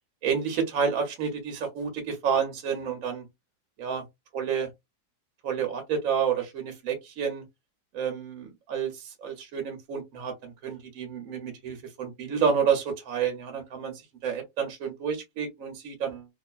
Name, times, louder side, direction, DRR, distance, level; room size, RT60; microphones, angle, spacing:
voice 1, 0.2-3.3 3.8-4.0 4.3-4.7 5.4-7.4 7.9-16.3, right 7 dB, 60° right, 1.1 m, -29 dB
3.0 x 2.1 x 2.3 m
omnidirectional pair, 1.8 m